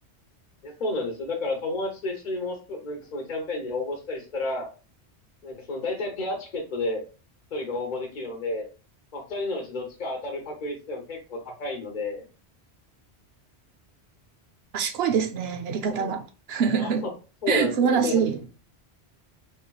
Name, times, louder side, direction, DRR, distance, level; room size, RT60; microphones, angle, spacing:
voice 1, 0.6-4.7 5.4-7.0 7.5-8.7 9.1-12.2 15.9-16.1 16.8-17.1 17.4-18.2, left 2 dB, 45° left, 0.9 m, -31 dB
voice 2, 14.7-17.1 17.5-18.5, right 7 dB, 70° right, 0.8 m, -25 dB
4.4 x 3.2 x 2.3 m
omnidirectional pair, 1.1 m